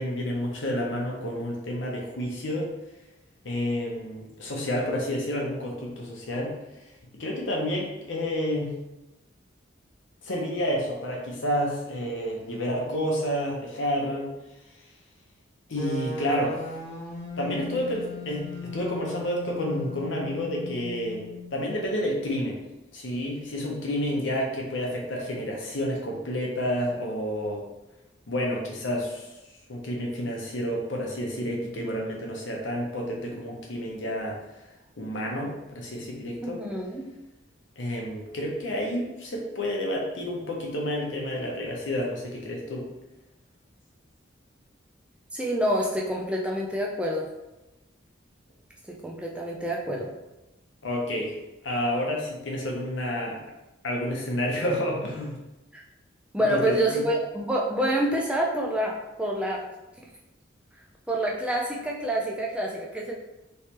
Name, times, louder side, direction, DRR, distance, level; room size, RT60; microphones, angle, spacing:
voice 1, 0.0-2.7 3.4-6.5 7.2-8.7 10.2-14.3 15.7-16.6 17.4-21.2 21.5-22.6 22.9-27.6 28.3-29.3 29.7-34.6 35.0-36.6 37.8-42.9 50.8-51.3 51.6-53.4 53.8-55.4 56.5-56.6 56.9-57.0, equal, 75° left, -1 dB, 0.8 m, -29 dB
sound 1, 15.7-21.8, left 2 dB, 15° left, 0.9 m, -38 dB
voice 2, 36.4-37.1 45.3-47.3 48.9-50.1 55.7-55.8 56.3-59.6 61.1-63.1, right 1 dB, 5° right, -2 dB, 0.3 m, -27 dB
3.3 x 3.1 x 2.9 m, 0.98 s
head